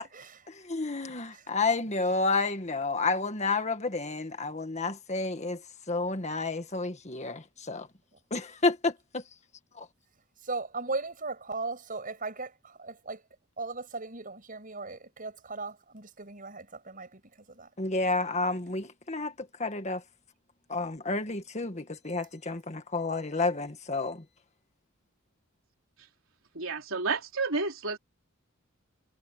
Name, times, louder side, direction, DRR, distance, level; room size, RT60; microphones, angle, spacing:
voice 1, 0.7-5.6 5.9-7.9 8.3-9.2 9.8-9.9 17.8-19.3 19.6-20.0 20.7-24.2, left 3 dB, 35° left, 1.7 m, -30 dB
voice 2, 10.4-13.2 13.6-17.2 17.5-17.7, right 3 dB, 40° right, 7.2 m, -37 dB
voice 3, 26.5-28.0, right 4 dB, 70° right, 3.7 m, -30 dB
head